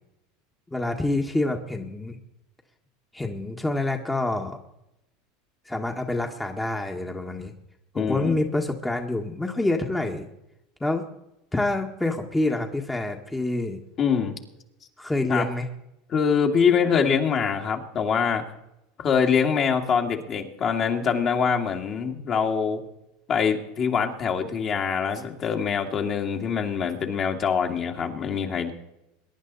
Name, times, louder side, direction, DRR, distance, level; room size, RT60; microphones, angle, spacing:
voice 1, 0.7-2.2 3.1-4.6 5.6-7.5 7.9-10.2 10.8-11.0 11.5-13.8 15.0-15.6, left 2 dB, 10° left, 3 dB, 1.6 m, -27 dB
voice 2, 7.9-8.4 14.0-14.3 15.3-15.5 16.1-18.4 19.0-22.8 23.3-28.7, left 6 dB, 40° left, 2 dB, 2.3 m, -24 dB
22.0 x 10.5 x 4.1 m, 0.86 s
hypercardioid pair, 95°, 0 cm